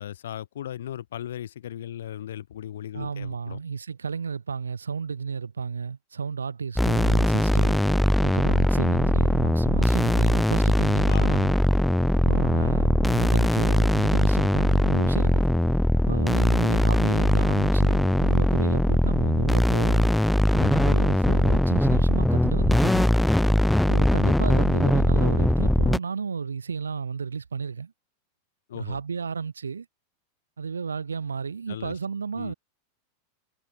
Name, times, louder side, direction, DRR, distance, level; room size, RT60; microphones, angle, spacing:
voice 1, 0.0-3.6 11.1-11.4 28.7-29.0 31.7-32.0 32.3-32.5, left 11 dB, 60° left, 3.0 m, -37 dB
voice 2, 2.9-7.8 8.2-11.5 12.2-15.4 16.1-20.1 20.5-23.1 23.9-27.9 28.7-29.9 30.6-32.5, right 5 dB, 75° right, 3.6 m, -32 dB
sound 1, 6.7-26.0, left 1 dB, 5° left, 0.4 m, -21 dB
figure-of-eight pair, 90°, 0 cm